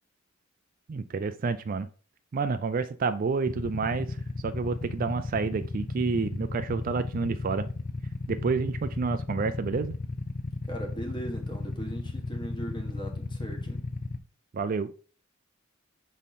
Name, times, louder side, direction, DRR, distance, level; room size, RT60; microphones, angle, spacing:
voice 1, 0.9-1.9 2.3-7.7 8.3-9.9 14.5-14.9, right 4 dB, 45° right, 0.4 m, -29 dB
Motorcycle / Idling, 3.5-14.2, left 3 dB, 40° left, 0.5 m, -35 dB
voice 2, 10.7-13.9, right 1 dB, 20° left, 1.3 m, -39 dB
6.3 x 3.6 x 4.1 m
head